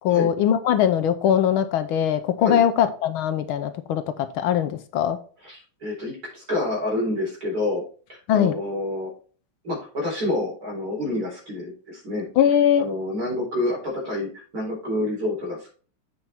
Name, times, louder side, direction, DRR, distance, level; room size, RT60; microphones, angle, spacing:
voice 1, 0.0-5.2 8.3-8.5 12.4-12.9, left 9 dB, 80° left, 11 dB, 1.5 m, -21 dB
voice 2, 5.4-7.8 8.1-9.1 9.6-12.3 12.8-15.7, left 1 dB, 45° right, -2 dB, 4.6 m, -28 dB
8.0 x 5.7 x 4.4 m, 0.40 s
omnidirectional pair, 2.3 m